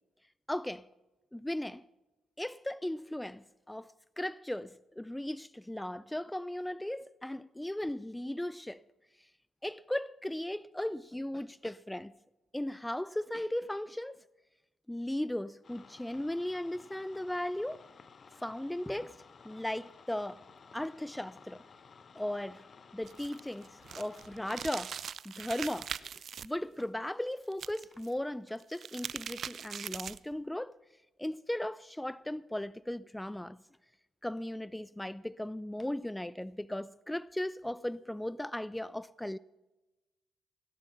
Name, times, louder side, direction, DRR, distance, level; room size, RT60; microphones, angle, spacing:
voice 1, 0.5-0.9 1.3-1.8 2.4-8.8 9.6-12.1 12.5-14.2 14.9-17.8 18.4-19.2 19.4-20.4 20.7-21.6 22.2-22.6 22.9-25.0 25.2-26.1 26.4-30.8 31.2-33.6 34.2-39.4, left 1 dB, 10° left, 0.4 m, -37 dB
sound 1, 15.6-24.6, left 5 dB, 45° left, 0.9 m, -56 dB
sound 2, 23.0-26.5 27.5-28.1 28.6-30.3, right 7 dB, 55° right, 0.4 m, -41 dB
17.0 x 10.5 x 5.8 m
hypercardioid pair, 45°, 0 cm